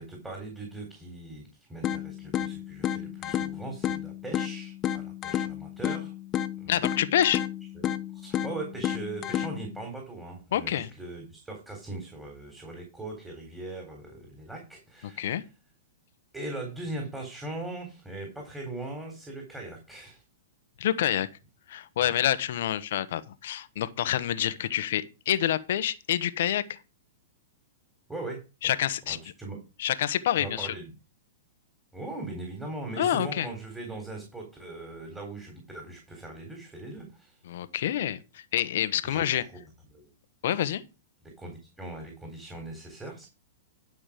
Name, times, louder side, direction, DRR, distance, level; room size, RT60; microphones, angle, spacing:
voice 1, 0.0-6.1 6.6-6.7 7.7-7.8 8.1-15.4 16.3-20.2 22.0-22.1 28.1-28.7 29.1-29.6 30.4-30.9 31.9-37.4 39.0-39.5 39.9-40.1 41.4-43.3, right 2 dB, 10° right, 3.7 m, -40 dB
sound 1, 1.8-9.8, left 10 dB, 30° left, 0.8 m, -32 dB
voice 2, 6.7-7.4 10.5-10.9 15.2-15.4 20.8-21.3 21.7-26.8 28.6-29.2 29.8-30.7 33.0-33.5 37.4-39.4 40.4-40.8, left 11 dB, 65° left, 1.0 m, -27 dB
11.5 x 6.1 x 5.1 m
hypercardioid pair, 130°, 0 cm